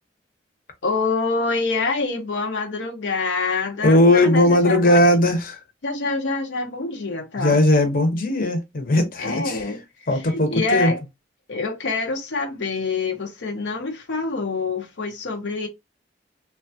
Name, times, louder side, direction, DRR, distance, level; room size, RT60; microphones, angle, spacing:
voice 1, 0.8-5.0 5.8-7.6 9.2-9.8 10.1-11.0 11.5-15.7, left 3 dB, 85° left, 0.6 m, -26 dB
voice 2, 3.8-5.6 7.4-9.7 10.1-10.9, left 1 dB, 50° left, 0.8 m, -18 dB
3.2 x 2.3 x 2.6 m
head